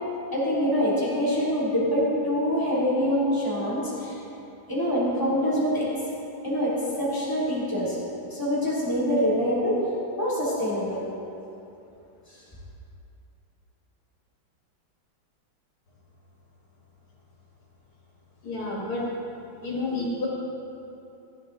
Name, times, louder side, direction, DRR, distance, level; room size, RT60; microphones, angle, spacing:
voice 1, 0.3-4.2 4.7-5.9 6.4-8.0 8.3-9.8 10.2-11.0 12.3-12.4, equal, 10° left, -8 dB, 2.9 m, -25 dB
voice 2, 18.4-19.1 19.6-20.3, left 2 dB, 85° left, -5 dB, 3.3 m, -29 dB
14.5 x 12.0 x 4.0 m, 2.8 s
omnidirectional pair, 2.3 m